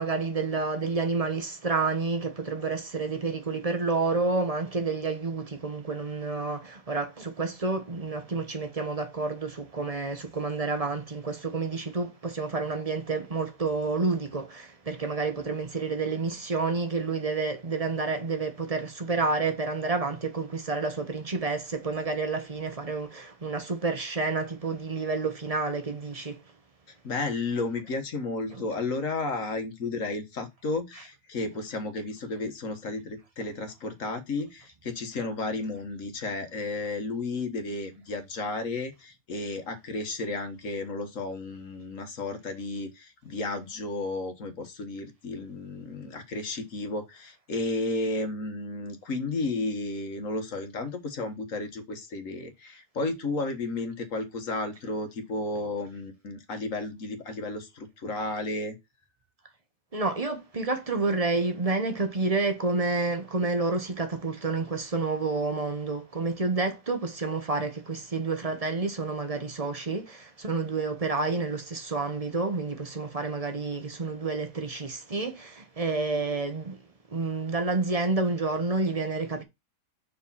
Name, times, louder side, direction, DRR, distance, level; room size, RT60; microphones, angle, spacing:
voice 1, 0.0-26.4 28.5-28.6 59.9-76.8 77.1-79.4, right 3 dB, 25° right, 1.0 m, -29 dB
voice 2, 27.0-58.8, left 2 dB, 55° left, 1.5 m, -33 dB
5.0 x 4.8 x 5.6 m
omnidirectional pair, 1.8 m